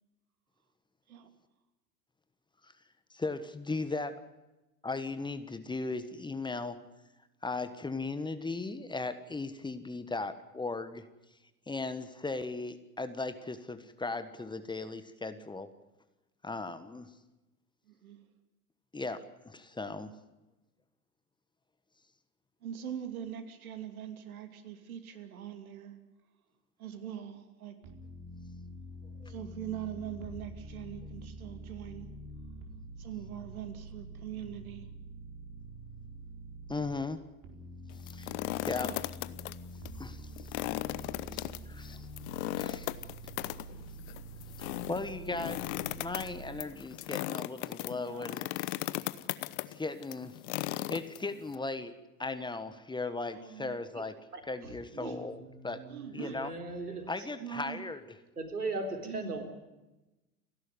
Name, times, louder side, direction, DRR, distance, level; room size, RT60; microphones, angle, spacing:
voice 1, 3.1-4.1 4.8-6.8 7.4-11.0 11.7-15.7 16.4-17.1 18.9-20.1 29.2-29.3 36.7-37.2 38.1-38.3 38.6-38.9 40.0-40.5 41.0-42.1 42.6-42.9 44.6-48.7 49.7-55.8 56.1-56.5 57.1-58.0, left 3 dB, 10° left, 11 dB, 1.4 m, -37 dB
voice 2, 17.9-18.2 22.6-25.9 26.8-27.8 29.3-32.1 33.0-34.9 38.8-39.0 47.9-48.4 50.8-50.9 53.3-53.8 55.0-55.3 55.9-56.4 57.4-57.8 59.0-59.4, right 9 dB, 70° right, 9 dB, 2.9 m, -42 dB
sound 1, 27.8-37.0 37.4-46.6, right 1 dB, 45° right, 4.5 m, -46 dB
sound 2, 37.9-39.5 39.8-39.9 40.4-51.6, left 18 dB, 50° left, 1.0 m, -37 dB
voice 3, 54.3-57.1 58.4-59.4, right 2 dB, 85° right, 5 dB, 3.8 m, -39 dB
30.0 x 11.5 x 9.4 m, 1.0 s
figure-of-eight pair, 90°, 45 cm